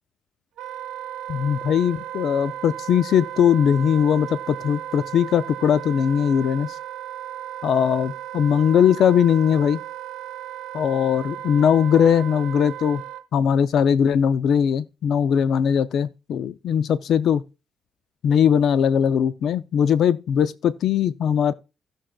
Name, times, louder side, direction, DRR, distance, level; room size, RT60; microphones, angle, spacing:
Wind instrument woodwind instrument, 0.6-13.2, right 12 dB, 85° right, 0.5 m, -35 dB
voice 1, 1.3-6.8 7.6-9.8 10.7-13.0 13.3-17.4 18.2-21.5, left 8 dB, 70° left, 0.4 m, -20 dB
16.5 x 6.2 x 2.3 m
cardioid pair, 90°, 0 cm